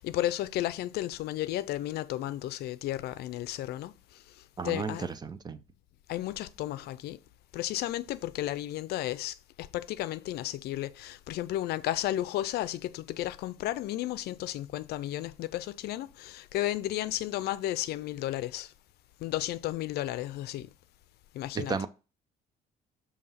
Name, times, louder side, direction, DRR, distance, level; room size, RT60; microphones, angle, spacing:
voice 1, 0.0-3.9 4.6-5.1 6.1-7.2 7.5-18.7 19.2-20.7 21.3-21.9, left 14 dB, 70° left, 0.5 m, -33 dB
voice 2, 4.6-5.6 21.5-21.9, right 5 dB, 25° right, 0.6 m, -33 dB
6.9 x 2.9 x 5.5 m
cardioid pair, 110°, 17 cm